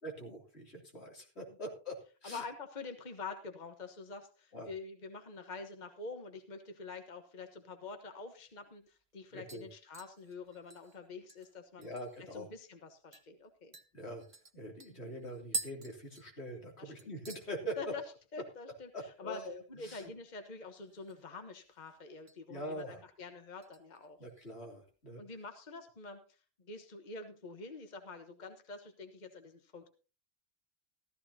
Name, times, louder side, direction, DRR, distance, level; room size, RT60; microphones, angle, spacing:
voice 1, 0.0-2.4 4.5-4.7 9.3-9.7 11.8-12.5 13.9-14.2 14.5-17.8 18.9-20.1 22.5-23.0 24.2-25.2, equal, 90° left, 0 dB, 3.3 m, -44 dB
voice 2, 2.2-11.9 12.3-13.8 16.8-17.1 17.8-18.0 18.3-19.4 19.7-24.2 25.2-26.2 26.6-29.9, left 4 dB, 45° left, 6 dB, 1.3 m, -46 dB
sound 1, 8.4-8.5 8.9-9.2 9.5-12.3 12.7-12.8 13.1-13.3 13.7-16.7 17.0-17.5 17.8-18.2 18.5-18.6 20.7-21.3 21.6-22.4 22.8-23.1 23.6-24.5 24.9-25.0, right 3 dB, 35° right, 0.9 m, -46 dB
15.0 x 13.5 x 2.8 m, 0.35 s
omnidirectional pair, 1.1 m